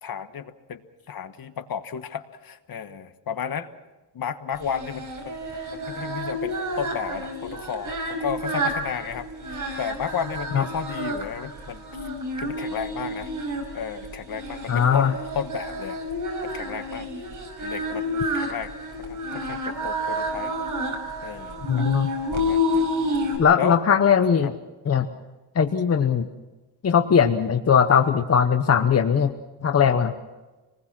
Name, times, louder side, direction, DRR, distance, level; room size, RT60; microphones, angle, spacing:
voice 1, 0.0-3.7 4.1-5.3 5.9-12.1 12.4-13.3 13.7-16.0 16.4-17.3 17.6-18.7 19.0-20.5 21.2-21.9 22.3-22.9 23.5-23.8 24.4-24.5, left 7 dB, 50° left, 10 dB, 1.3 m, -33 dB
Singing, 4.6-23.4, equal, 45° right, 5.4 m, -30 dB
voice 2, 14.7-15.1 21.7-22.1 23.4-24.5 24.9-25.1 25.5-26.3 26.8-29.3 29.6-30.1, left 7 dB, 35° left, 8 dB, 0.9 m, -19 dB
26.0 x 20.0 x 6.0 m, 1.1 s
cardioid pair, 140°, 44 cm